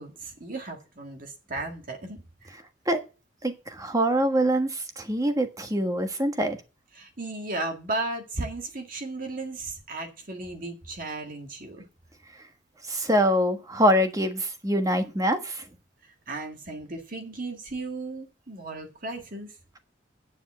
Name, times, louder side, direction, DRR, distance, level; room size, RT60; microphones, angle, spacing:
voice 1, 0.0-2.5 6.9-11.8 16.3-19.5, right 2 dB, 45° right, 1.9 m, -35 dB
voice 2, 3.4-6.6 12.9-15.6, equal, 20° right, 1.4 m, -24 dB
10.0 x 7.1 x 7.4 m
head